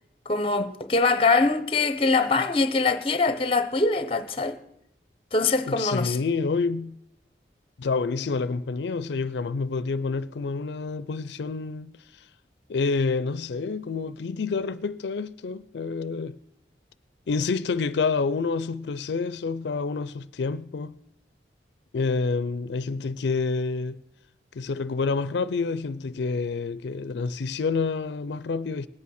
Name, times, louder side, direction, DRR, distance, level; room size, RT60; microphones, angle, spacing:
voice 1, 0.3-4.6 5.3-6.2, left 3 dB, 30° left, 0.8 m, -23 dB
voice 2, 5.7-7.0 7.8-12.3 12.7-16.4 17.3-21.0 21.9-24.0 24.5-28.9, left 4 dB, 80° left, 0.4 m, -28 dB
19.5 x 8.4 x 6.4 m
head